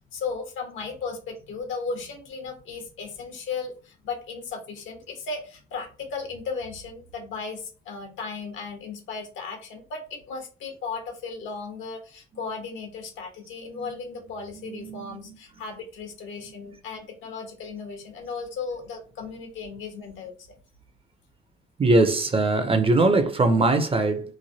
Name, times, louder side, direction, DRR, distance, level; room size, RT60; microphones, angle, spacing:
voice 1, 0.1-20.3, left 4 dB, 80° left, 1.0 m, -36 dB
voice 2, 14.6-15.4 21.8-24.3, right 2 dB, 30° right, 0.5 m, -22 dB
3.1 x 2.1 x 2.7 m
cardioid pair, 90°, 20 cm